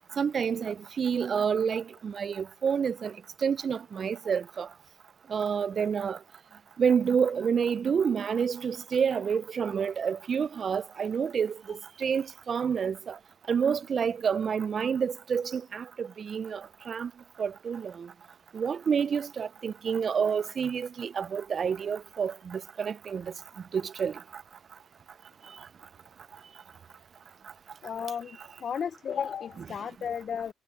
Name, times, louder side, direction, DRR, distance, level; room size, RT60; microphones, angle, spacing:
voice 1, 0.2-3.1 3.4-4.7 5.3-6.2 6.8-13.2 13.5-17.1 17.4-18.1 18.5-23.3 23.7-24.1, right 7 dB, 50° right, 0.3 m, -28 dB
voice 2, 27.8-30.5, left 7 dB, 55° left, 0.4 m, -34 dB
cardioid pair, 90°, 0 cm